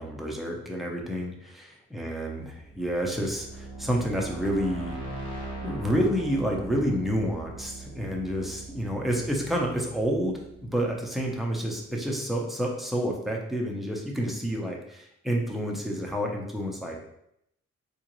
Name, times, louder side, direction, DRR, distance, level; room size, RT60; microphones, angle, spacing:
voice 1, 0.0-5.0 5.6-17.0, equal, ahead, -1 dB, 0.7 m, -29 dB
sound 1, 2.5-11.3, right 2 dB, 15° left, 1.1 m, -40 dB
3.7 x 2.5 x 3.0 m, 0.76 s
cardioid pair, 90°, 30 cm